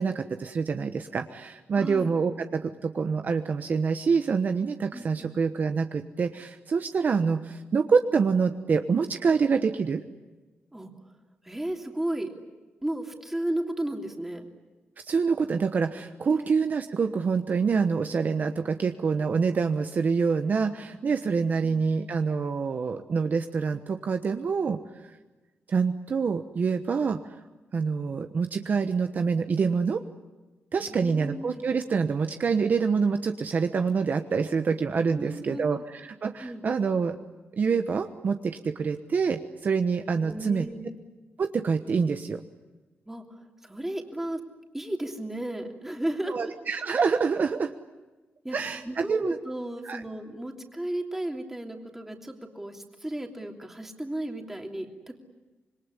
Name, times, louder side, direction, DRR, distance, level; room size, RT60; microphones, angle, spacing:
voice 1, 0.0-10.0 15.1-24.8 25.7-27.3 27.7-30.0 30.7-37.2 37.5-40.6 41.4-42.4 46.3-47.7 48.5-49.4 49.8-50.0, right 5 dB, 50° right, 7 dB, 1.1 m, -26 dB
voice 2, 1.8-2.1 4.9-5.3 10.7-10.9 11.4-12.3 12.8-14.5 16.3-16.5 30.8-31.6 35.1-35.8 36.4-36.6 40.2-40.9 43.1-44.4 44.7-46.5 48.4-48.6 48.8-55.2, right 1 dB, 10° right, 3 dB, 3.0 m, -34 dB
26.5 x 21.5 x 9.9 m, 1.2 s
wide cardioid pair, 125°, 4 cm